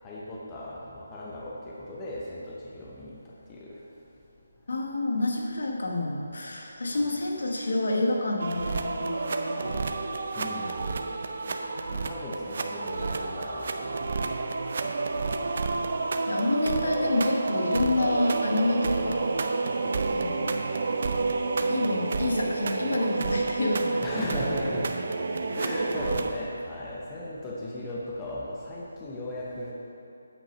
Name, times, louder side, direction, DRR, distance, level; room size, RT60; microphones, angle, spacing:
voice 1, 0.0-3.8 6.9-7.1 9.9-14.9 24.0-24.9 25.2-29.7, left 1 dB, 10° left, -5 dB, 0.7 m, -38 dB
voice 2, 4.7-9.8 14.8-14.9 16.3-19.4 20.1-20.7 21.7-24.8 25.4-25.6, left 2 dB, 75° left, 1 dB, 1.3 m, -29 dB
sound 1, 8.4-26.3, right 3 dB, 45° right, 0.5 m, -29 dB
8.6 x 5.9 x 5.3 m, 2.7 s
hypercardioid pair, 170°, 0 cm